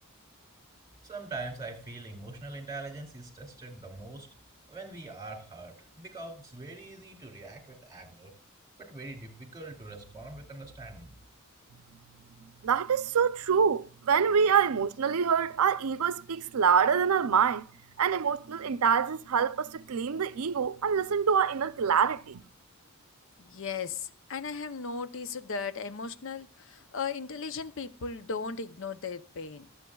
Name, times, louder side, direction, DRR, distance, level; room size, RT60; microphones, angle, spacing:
voice 1, 1.0-4.3 4.7-8.3 8.8-11.1, right 2 dB, 20° right, 2.6 m, -43 dB
voice 2, 12.6-17.7 18.0-22.4, right 6 dB, 80° right, 0.5 m, -26 dB
voice 3, 23.4-29.7, left 5 dB, 60° left, 0.6 m, -36 dB
23.5 x 8.0 x 2.3 m
head